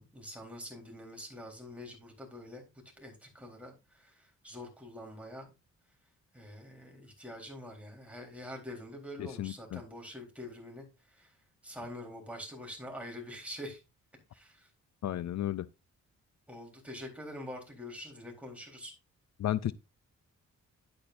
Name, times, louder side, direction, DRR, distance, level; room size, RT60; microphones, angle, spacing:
voice 1, 0.0-2.7 3.0-5.5 6.3-11.3 11.6-13.8 14.3-14.7 16.5-18.9, left 1 dB, 5° right, 3.9 m, -45 dB
voice 2, 9.2-9.8 15.0-15.6 19.4-19.7, left 12 dB, 65° left, 0.5 m, -33 dB
10.5 x 8.7 x 2.6 m
cardioid pair, 110°, 30 cm